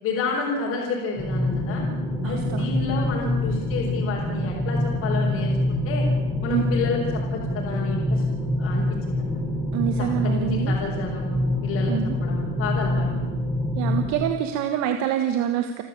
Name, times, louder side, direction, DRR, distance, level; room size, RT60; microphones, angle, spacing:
voice 1, 0.0-1.8 2.2-6.0 6.4-8.2 8.6-9.4 10.0-11.9 12.2-13.4, left 4 dB, 45° left, -4 dB, 4.9 m, -30 dB
sound 1, 1.2-14.1, left 1 dB, 5° right, 5.1 m, -25 dB
voice 2, 2.2-2.7 6.5-6.7 9.7-10.7 11.9-12.2 13.7-15.8, right 10 dB, 55° right, 6 dB, 1.7 m, -26 dB
29.0 x 13.0 x 8.6 m, 1.2 s
cardioid pair, 175°, 33 cm